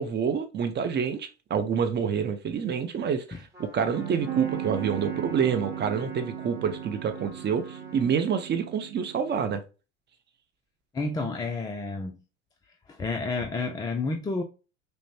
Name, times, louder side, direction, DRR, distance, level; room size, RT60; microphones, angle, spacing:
voice 1, 0.0-9.6, right 7 dB, 30° right, 0.6 m, -27 dB
Trumpet, 3.5-8.2, right 2 dB, 5° right, 1.3 m, -46 dB
sound 1, 4.0-9.5, right 11 dB, 70° right, 0.8 m, -37 dB
voice 2, 10.9-12.2 12.9-14.4, left 3 dB, 10° left, 0.3 m, -30 dB
5.0 x 2.1 x 2.7 m
hypercardioid pair, 80°, 38 cm